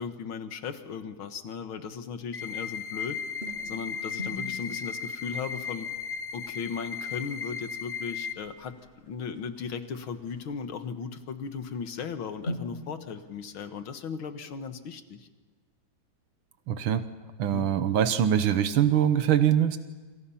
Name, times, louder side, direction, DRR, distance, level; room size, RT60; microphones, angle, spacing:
voice 1, 0.0-3.2 3.6-5.9 6.3-15.3 17.5-17.7, left 6 dB, 85° left, 8 dB, 2.3 m, -37 dB
sound 1, 2.3-8.3, left 6 dB, 50° left, 0.5 m, -36 dB
sound 2, 3.1-13.7, left 1 dB, 30° left, 7.1 m, -45 dB
voice 2, 16.7-17.0 17.4-19.8, right 9 dB, 85° right, 10 dB, 1.9 m, -23 dB
28.0 x 27.5 x 5.8 m, 1.3 s
omnidirectional pair, 2.2 m